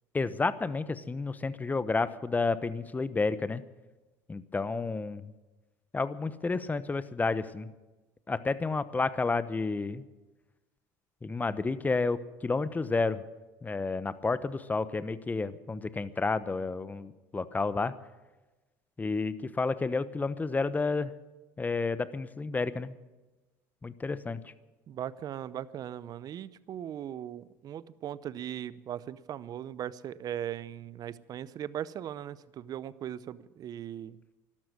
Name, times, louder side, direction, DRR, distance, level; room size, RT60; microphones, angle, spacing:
voice 1, 0.1-3.6 4.3-5.3 5.9-7.7 8.3-10.0 11.2-13.2 13.6-17.9 19.0-21.1 21.6-22.9 23.8-24.4, left 3 dB, 20° left, 15 dB, 0.9 m, -30 dB
voice 2, 24.9-34.2, right 10 dB, 50° right, 18 dB, 0.7 m, -39 dB
12.5 x 12.0 x 9.6 m, 1.1 s
supercardioid pair, 80°, 9 cm